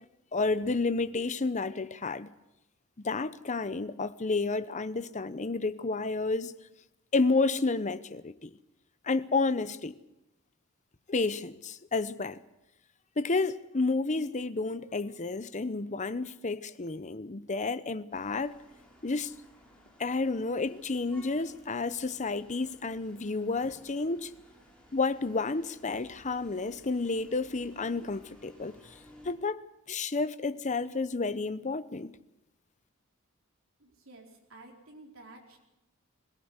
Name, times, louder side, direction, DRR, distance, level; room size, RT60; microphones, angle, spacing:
voice 1, 0.3-2.3 3.0-6.5 7.1-8.5 9.0-9.9 11.1-12.4 13.2-18.6 19.0-19.3 20.0-24.3 24.9-28.8 29.2-29.6 29.9-32.1, left 3 dB, 35° left, 0.8 m, -30 dB
sound 1, 18.1-29.3, left 1 dB, 5° left, 4.6 m, -57 dB
voice 2, 33.8-35.6, right 2 dB, 65° right, 4.5 m, -52 dB
21.5 x 17.5 x 8.1 m
head